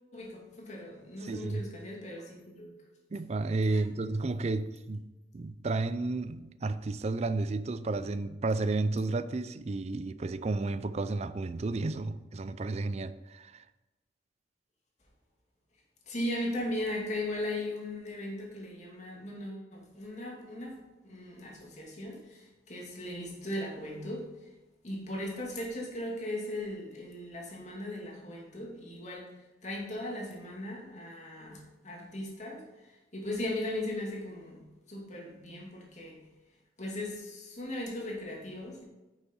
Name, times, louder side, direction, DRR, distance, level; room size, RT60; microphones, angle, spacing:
voice 1, 0.1-2.7 3.7-3.8 16.1-24.5 24.8-29.3 29.6-34.6 34.9-36.2 36.8-38.8, left 1 dB, 40° left, 2.5 m, -38 dB
voice 2, 1.2-1.6 3.1-5.0 5.3-13.6, right 3 dB, 35° right, 0.4 m, -32 dB
9.3 x 6.9 x 4.6 m
head